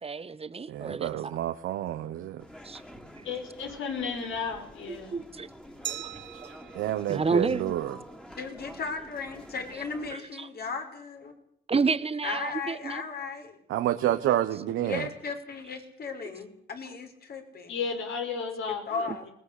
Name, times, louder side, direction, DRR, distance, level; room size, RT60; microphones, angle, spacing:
voice 1, 0.0-1.3 2.6-2.8 3.2-3.3 5.1-5.5 5.9-6.1 6.4-6.5 7.1-7.7 10.1-10.5 11.7-13.0 19.1-19.2, right 4 dB, 30° right, 1.6 m, -30 dB
voice 2, 0.7-2.4 6.7-8.0 13.7-15.1, right 13 dB, 85° right, 1.3 m, -29 dB
sound 1, 2.4-10.1, equal, 5° left, 3.1 m, -48 dB
voice 3, 3.2-5.2 17.7-19.1, left 5 dB, 75° left, 5.5 m, -33 dB
Glass, 5.8-8.6, right 11 dB, 70° right, 1.3 m, -42 dB
voice 4, 8.4-11.3 12.2-13.6 14.8-17.8 18.9-19.3, left 4 dB, 50° left, 5.3 m, -36 dB
20.5 x 19.5 x 8.4 m
cardioid pair, 90°, 20 cm